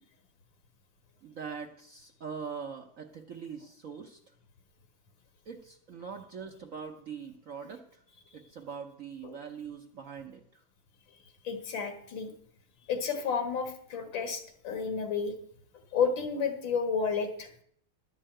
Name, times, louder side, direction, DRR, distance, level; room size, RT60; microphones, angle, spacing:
voice 1, 1.2-4.2 5.5-8.0 8.3-10.6, right 6 dB, 55° right, 4 dB, 0.9 m, -42 dB
voice 2, 11.4-12.3 12.9-15.3 15.9-17.5, left 5 dB, 70° left, 7 dB, 2.2 m, -31 dB
11.0 x 5.6 x 8.8 m, 0.66 s
omnidirectional pair, 2.2 m